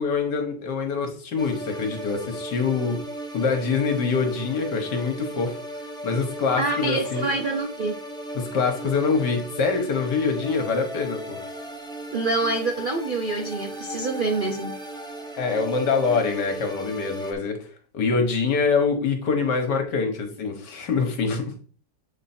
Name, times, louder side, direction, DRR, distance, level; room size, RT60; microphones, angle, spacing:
voice 1, 0.0-3.0 3.3-5.6 6.0-7.3 8.3-11.4 15.4-17.6 17.9-21.5, left 5 dB, 65° left, 1.9 m, -25 dB
sound 1, 1.4-17.3, right 1 dB, 5° left, 0.9 m, -36 dB
voice 2, 6.6-8.0 12.1-14.7, right 3 dB, 85° right, 0.4 m, -26 dB
7.8 x 4.5 x 4.4 m
omnidirectional pair, 2.0 m